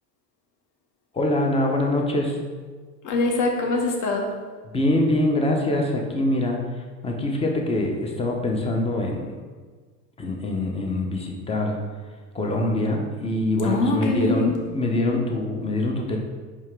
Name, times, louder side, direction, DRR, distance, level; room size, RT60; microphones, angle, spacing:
voice 1, 1.1-2.4 4.7-6.6 7.0-9.3 10.2-11.8 12.3-16.2, left 1 dB, 15° left, 1 dB, 0.6 m, -24 dB
voice 2, 3.0-4.3 13.6-14.6, left 3 dB, 40° left, 1 dB, 0.9 m, -23 dB
4.6 x 2.9 x 3.5 m, 1.5 s
hypercardioid pair, 80°, 48 cm